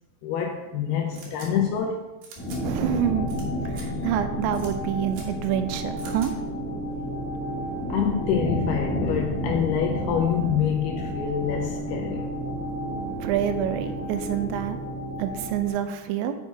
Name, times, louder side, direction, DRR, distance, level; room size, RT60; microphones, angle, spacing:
voice 1, 0.2-2.0 6.9-7.1 7.9-12.4, left 8 dB, 80° left, 2 dB, 2.4 m, -26 dB
sound 1, 1.1-1.5 2.2-2.6 3.3-3.4 3.7-3.9 4.5-4.7 5.1-5.3 6.0-6.3, right 4 dB, 65° right, 2.2 m, -45 dB
sound 2, 2.4-15.7, equal, 15° left, 2.0 m, -31 dB
voice 2, 2.6-3.3 3.7-6.3 13.2-14.8 15.2-16.4, right 10 dB, 85° right, 9 dB, 2.9 m, -27 dB
7.2 x 5.4 x 4.7 m, 1.0 s
omnidirectional pair, 5.2 m